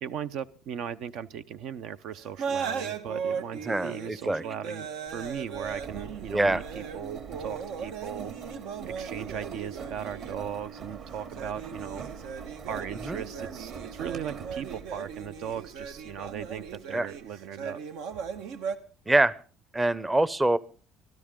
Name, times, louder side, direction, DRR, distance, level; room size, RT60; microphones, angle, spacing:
voice 1, 0.0-8.3 8.9-12.1 12.7-17.8, right 8 dB, 65° right, 13 dB, 0.8 m, -38 dB
sound 1, 2.2-18.8, right 6 dB, 80° right, 1.7 m, -38 dB
voice 2, 3.6-4.4 6.3-6.6 13.1-13.2 16.9-17.1 19.1-19.3 19.7-20.6, right 2 dB, 10° right, 19 dB, 0.7 m, -24 dB
Engine, 5.1-16.8, right 6 dB, 50° right, 2.8 m, -43 dB
24.0 x 13.5 x 3.7 m, 0.39 s
cardioid pair, 140°, 0 cm